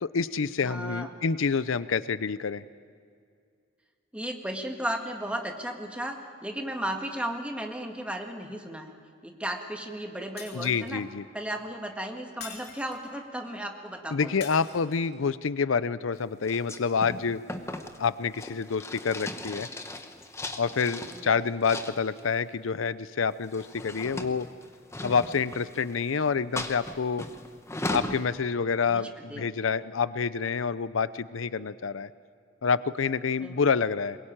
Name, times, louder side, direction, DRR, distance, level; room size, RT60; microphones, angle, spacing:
voice 1, 0.0-2.6 10.5-11.2 14.1-17.4 18.0-19.7 20.6-24.5 25.0-27.3 27.9-32.1 32.6-34.2, left 5 dB, 85° left, 16 dB, 0.6 m, -28 dB
voice 2, 0.6-1.1 4.1-9.0 9.2-11.0 11.3-14.5 21.1-21.4 28.9-29.5 33.4-33.7, right 1 dB, 5° right, 3 dB, 1.7 m, -35 dB
Shatter, 10.4-11.1 12.4-13.2 14.4-15.2, left 6 dB, 55° left, 3.0 m, -45 dB
sound 1, 16.4-21.2 21.6-22.3 23.3-26.0 26.6-28.2, left 1 dB, 15° left, 1.1 m, -37 dB
22.0 x 21.5 x 8.9 m, 2.2 s
head